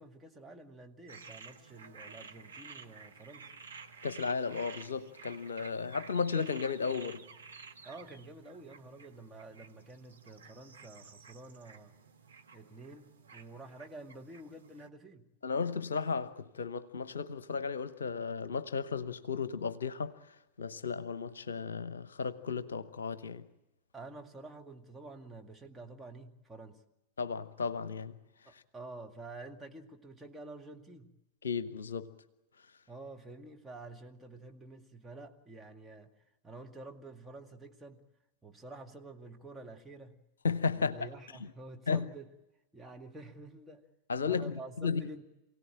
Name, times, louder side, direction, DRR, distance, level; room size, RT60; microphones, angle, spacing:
voice 1, 0.0-3.5 7.8-12.0 12.5-15.2 23.9-26.8 28.4-31.2 32.9-36.1 36.4-38.0 38.4-40.2 40.7-42.3 42.7-43.9 44.2-45.2, right 2 dB, 10° right, 2.1 m, -49 dB
sound 1, 1.1-14.9, right 5 dB, 75° right, 1.5 m, -52 dB
voice 2, 4.0-7.2 15.4-20.2 20.6-23.4 27.2-28.1 31.4-32.1 40.4-41.0 41.9-42.0 44.1-45.0, left 5 dB, 70° left, 0.9 m, -34 dB
28.0 x 17.5 x 8.7 m
figure-of-eight pair, 90°, 0 cm